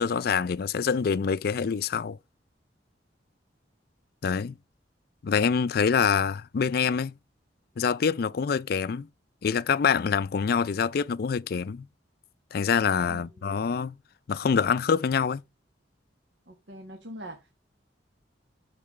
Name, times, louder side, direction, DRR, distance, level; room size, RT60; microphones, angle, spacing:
voice 1, 0.0-2.2 4.2-4.6 5.2-7.2 7.8-9.1 9.4-11.9 12.5-14.0 14.3-15.4, left 6 dB, 55° left, 0.4 m, -25 dB
voice 2, 13.1-13.4 16.5-17.5, equal, 80° right, 1.5 m, -43 dB
12.5 x 4.7 x 3.2 m
head